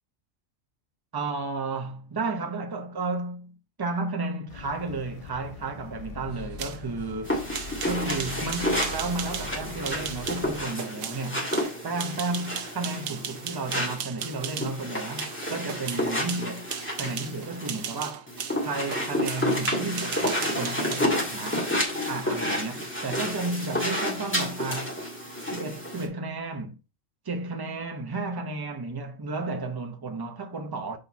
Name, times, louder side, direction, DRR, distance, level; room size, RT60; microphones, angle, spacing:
voice 1, 1.1-7.4 7.8-11.5 11.8-16.7 16.9-18.3 18.6-21.7 22.1-24.9 25.5-26.8 27.2-31.0, right 3 dB, 25° right, 0.6 m, -33 dB
sound 1, 4.5-10.7, left 5 dB, 60° left, 0.3 m, -42 dB
sound 2, 6.4-14.8 15.2-21.1, right 8 dB, 80° right, 1.2 m, -37 dB
sound 3, 7.3-26.1, left 1 dB, 10° left, 1.8 m, -30 dB
6.7 x 4.2 x 4.0 m
omnidirectional pair, 1.4 m